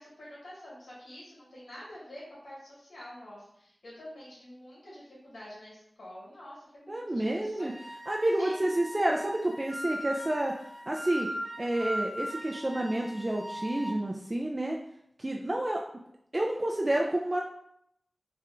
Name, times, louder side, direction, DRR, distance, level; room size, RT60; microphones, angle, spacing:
voice 1, 0.0-7.7 8.4-8.7, left 1 dB, 80° left, -6 dB, 1.6 m, -47 dB
voice 2, 6.9-7.7 8.1-10.5 10.9-11.3 11.6-14.8 15.2-15.8 16.3-17.4, right 1 dB, 35° right, 0 dB, 0.4 m, -29 dB
Wind instrument woodwind instrument, 7.6-14.0, equal, 5° right, 1.1 m, -39 dB
4.2 x 2.4 x 3.7 m, 0.75 s
wide cardioid pair, 45°, 0 cm